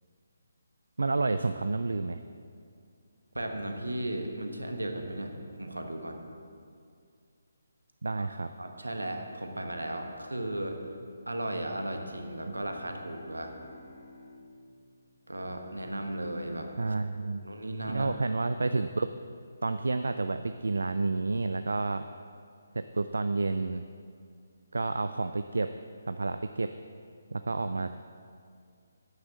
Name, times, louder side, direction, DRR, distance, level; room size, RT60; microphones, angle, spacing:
voice 1, 1.0-2.2 8.0-8.5 12.5-12.6 16.8-17.4 17.9-19.1 19.6-22.0 22.7-23.8 24.7-25.7 26.1-26.7 27.3-28.0, right 3 dB, 70° right, 9 dB, 0.3 m, -30 dB
voice 2, 3.3-6.2 8.2-8.3 8.6-10.8 11.3-13.5 15.3-16.9 17.4-18.1, right 1 dB, 85° right, 4 dB, 1.3 m, -35 dB
Bowed string instrument, 11.2-16.0, left 2 dB, 30° left, 1.2 m, -55 dB
9.7 x 6.0 x 6.6 m, 2.2 s
figure-of-eight pair, 145°, 0 cm